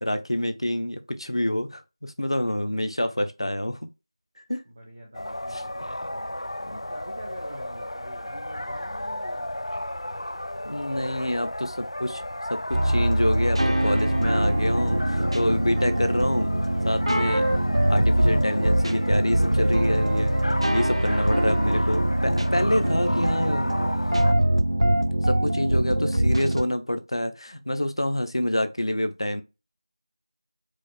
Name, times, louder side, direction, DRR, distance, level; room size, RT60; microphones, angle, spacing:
voice 1, 0.0-3.9 4.4-4.6 5.5-5.6 6.6-6.8 10.6-12.2 12.5-16.5 16.8-17.5 17.9-20.3 20.7-23.7 25.2-29.4, left 1 dB, 70° left, 0.7 m, -27 dB
voice 2, 4.7-9.6 10.7-11.2 22.4-23.9, right 1 dB, 10° right, 0.3 m, -45 dB
sound 1, 5.1-24.3, left 1 dB, 85° left, 0.3 m, -34 dB
sound 2, 12.7-26.6, right 1 dB, 80° right, 0.5 m, -23 dB
4.8 x 2.1 x 4.2 m
figure-of-eight pair, 175°, 3 cm